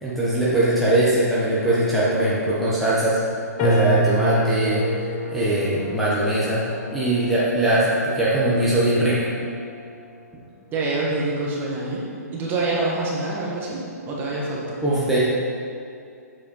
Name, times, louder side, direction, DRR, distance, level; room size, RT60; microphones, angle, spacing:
voice 1, 0.0-3.2 3.6-4.8 5.3-6.6 6.9-9.2 14.8-15.2, right 1 dB, ahead, -11 dB, 1.3 m, -21 dB
sound 1, 3.6-10.1, equal, 30° left, 1.0 m, -29 dB
voice 2, 10.7-14.8, right 2 dB, 20° right, -4 dB, 1.6 m, -26 dB
7.9 x 4.3 x 5.5 m, 2.4 s
hypercardioid pair, 135°, 9 cm